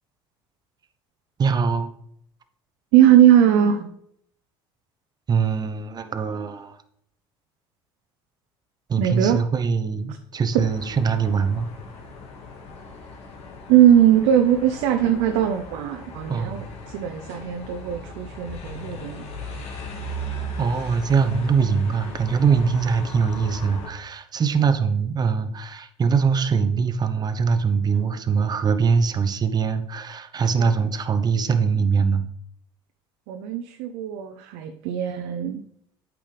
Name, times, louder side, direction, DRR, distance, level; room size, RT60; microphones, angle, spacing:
voice 1, 1.4-1.9 5.3-6.8 8.9-11.7 16.3-16.7 20.6-32.3, right 5 dB, 30° right, 9 dB, 0.9 m, -22 dB
voice 2, 2.9-3.9 9.0-9.4 13.7-19.2 30.6-30.7 33.3-35.6, right 10 dB, 75° right, 5 dB, 0.7 m, -19 dB
sound 1, 10.5-23.9, left 1 dB, 55° left, 2.0 m, -38 dB
8.6 x 6.0 x 3.4 m, 0.70 s
supercardioid pair, 85°, 13 cm